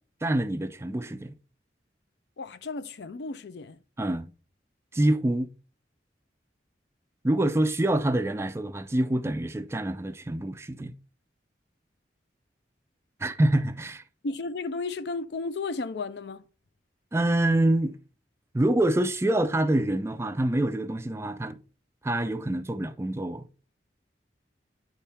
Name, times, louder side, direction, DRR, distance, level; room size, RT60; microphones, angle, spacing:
voice 1, 0.2-1.3 4.0-4.3 4.9-5.5 7.2-10.9 13.2-14.0 17.1-18.0 18.5-21.6 22.0-23.5, right 1 dB, 15° right, 0.3 m, -26 dB
voice 2, 2.4-3.8 14.2-16.4, left 3 dB, 70° left, 0.5 m, -33 dB
9.1 x 3.5 x 4.3 m
head